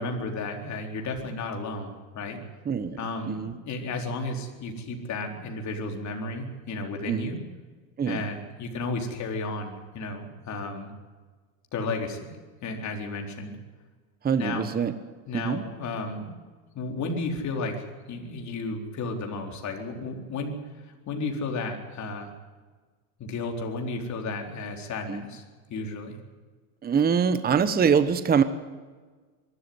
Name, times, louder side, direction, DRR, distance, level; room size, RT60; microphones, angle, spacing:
voice 1, 0.0-2.4 3.0-7.4 8.0-10.9 11.7-12.4 12.6-13.6 14.4-14.7 15.3-16.3 16.7-22.3 23.2-25.4 25.7-26.2, left 3 dB, 40° left, 3 dB, 4.2 m, -33 dB
voice 2, 2.6-3.0 3.3-3.6 7.1-7.3 8.0-8.3 14.2-14.9 15.3-15.6 25.1-25.2 26.8-28.4, right 6 dB, 20° right, 12 dB, 1.1 m, -24 dB
23.0 x 13.0 x 9.6 m, 1.4 s
supercardioid pair, 115°, 45 cm